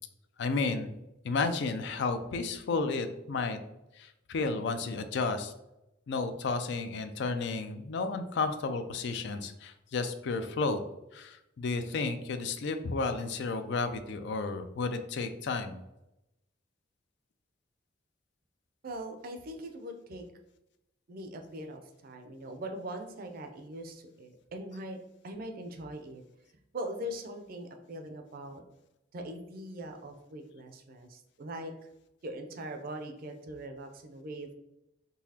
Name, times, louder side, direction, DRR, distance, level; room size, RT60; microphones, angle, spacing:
voice 1, 0.4-0.9 1.2-3.6 4.0-5.5 6.1-10.8 11.1-15.8, left 4 dB, 65° left, 8 dB, 0.4 m, -32 dB
voice 2, 18.8-20.2 21.1-25.0 25.2-26.2 26.7-28.6 29.1-31.7 32.2-34.5, right 1 dB, 50° right, 5 dB, 0.5 m, -41 dB
3.9 x 2.8 x 2.8 m, 0.89 s
head